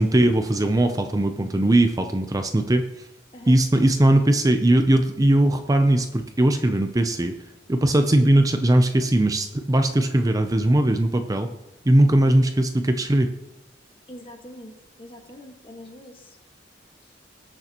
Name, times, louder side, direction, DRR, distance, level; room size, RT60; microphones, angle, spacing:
voice 1, 0.0-3.1 3.5-7.3 7.7-11.5 11.8-13.3, right 1 dB, 20° right, 7 dB, 0.5 m, -19 dB
voice 2, 14.1-16.4 17.0-17.2, left 1 dB, 30° left, 3 dB, 1.5 m, -44 dB
19.5 x 6.7 x 2.9 m, 0.91 s
head